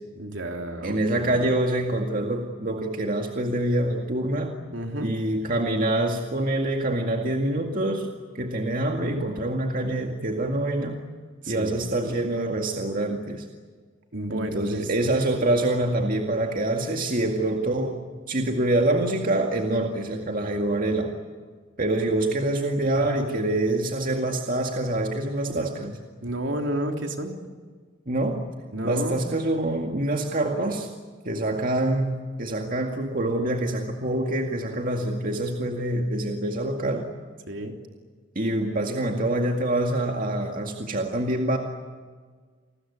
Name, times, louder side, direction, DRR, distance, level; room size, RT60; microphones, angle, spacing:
voice 1, 0.1-1.4 4.7-5.1 11.4-11.8 14.1-15.1 22.9-23.1 26.2-27.3 28.7-29.2 37.5-37.7, right 1 dB, 65° right, 3 dB, 3.4 m, -31 dB
voice 2, 0.8-4.5 5.0-8.1 8.3-11.0 11.5-13.5 14.3-18.0 18.3-21.1 21.8-26.0 28.1-28.4 28.8-30.9 31.2-37.1 38.4-41.6, right 1 dB, 45° right, 2 dB, 2.1 m, -25 dB
29.5 x 21.0 x 8.4 m, 1.5 s
head